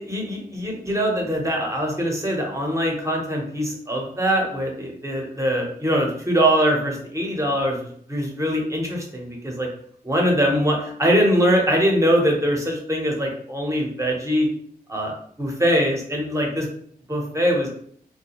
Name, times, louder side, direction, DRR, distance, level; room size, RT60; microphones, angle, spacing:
voice 1, 0.0-7.8 8.1-9.7 10.0-14.5 14.9-15.1 15.4-16.7 17.1-17.7, equal, 20° right, 0 dB, 0.8 m, -22 dB
2.5 x 2.2 x 2.9 m, 0.62 s
cardioid pair, 70°, 16 cm